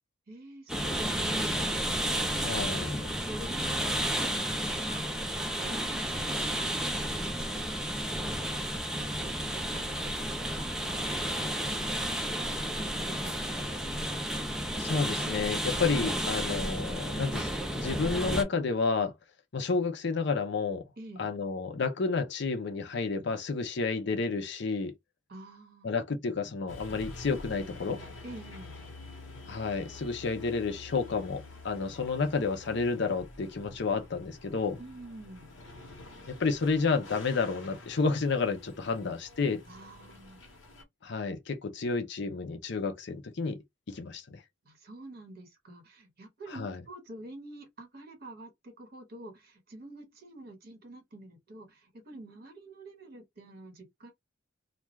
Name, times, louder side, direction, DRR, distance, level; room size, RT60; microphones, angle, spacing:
voice 1, 0.3-1.6 2.8-5.0 5.6-10.0 10.2-11.8 12.7-14.0 21.0-21.3 25.3-25.9 28.2-28.8 34.8-35.5 39.7-40.4 44.6-54.1, right 2 dB, 50° right, 1.2 m, -48 dB
sound 1, 0.7-18.4, right 1 dB, 5° right, 0.5 m, -32 dB
voice 2, 2.3-3.1 14.8-19.1 19.5-20.9 21.2-24.9 25.8-28.0 29.5-34.8 36.3-39.6 41.0-43.6 43.9-44.4 46.5-46.8, left 4 dB, 60° left, 0.6 m, -31 dB
sound 2, 26.7-40.8, left 2 dB, 75° left, 1.0 m, -48 dB
2.4 x 2.3 x 3.1 m
head